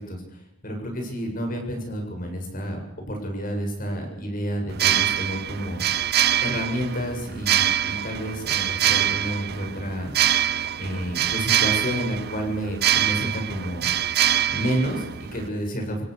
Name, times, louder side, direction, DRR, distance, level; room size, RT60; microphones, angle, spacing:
voice 1, 0.6-2.8 3.1-6.1 6.4-10.1 10.8-13.8 14.5-16.0, equal, 40° left, 3 dB, 7.7 m, -30 dB
sound 1, 4.7-15.5, right 11 dB, 50° right, 0.7 m, -24 dB
27.0 x 17.0 x 6.8 m, 0.83 s
head